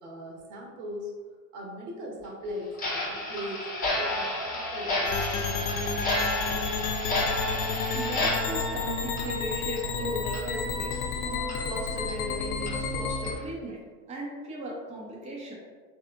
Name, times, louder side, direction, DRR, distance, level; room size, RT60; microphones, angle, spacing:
voice 1, 0.0-1.1 1.5-3.7 4.0-5.4, equal, 60° right, -2 dB, 1.1 m, -39 dB
Clock, 2.7-10.0 10.3-10.4 10.9-11.0 11.5-11.6 12.1-12.2 12.7-12.8 13.2-13.4, left 1 dB, 15° left, 1.0 m, -31 dB
sound 1, 5.1-13.3, left 4 dB, 60° left, 0.6 m, -31 dB
voice 2, 7.9-10.9 11.2-13.8 14.1-15.6, equal, 15° right, -4 dB, 0.5 m, -37 dB
3.2 x 2.9 x 2.4 m, 1.5 s
hypercardioid pair, 95°, 49 cm